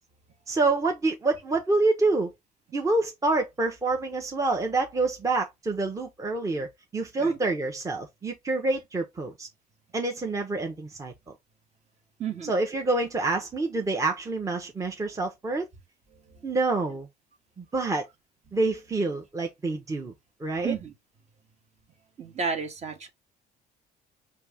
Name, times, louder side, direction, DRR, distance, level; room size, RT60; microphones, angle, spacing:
voice 1, 0.5-2.3 2.7-9.5 9.9-11.1 12.4-15.7 16.4-17.1 17.6-18.1 18.5-20.1 20.4-20.7, right 3 dB, 20° right, 0.7 m, -27 dB
voice 2, 12.2-12.5 20.6-20.9 22.2-23.1, right 6 dB, 40° right, 1.1 m, -31 dB
4.5 x 2.7 x 3.4 m
cardioid pair, 110°, 17 cm